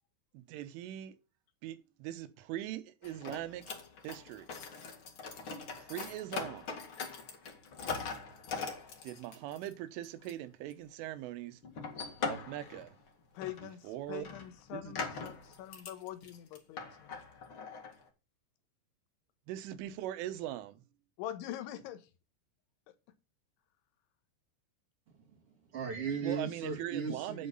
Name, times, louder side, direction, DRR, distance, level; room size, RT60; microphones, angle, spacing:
voice 1, 0.3-1.2 1.6-3.7 4.0-4.5 5.8-6.7 9.0-11.6 12.3-13.0 13.8-14.3 14.7-14.9 19.5-20.8 26.2-27.5, right 13 dB, 85° right, 3.6 m, -41 dB
sound 1, 3.0-9.7 10.0-10.3 10.7-10.8 11.6-13.1 13.4-13.7 14.0-18.0, left 5 dB, 60° left, 1.3 m, -42 dB
voice 2, 13.3-17.2 21.2-22.1 22.9-23.0, left 12 dB, 80° left, 3.5 m, -44 dB
voice 3, 25.1-27.5, right 5 dB, 40° right, 2.4 m, -37 dB
9.4 x 8.4 x 4.0 m
omnidirectional pair, 5.5 m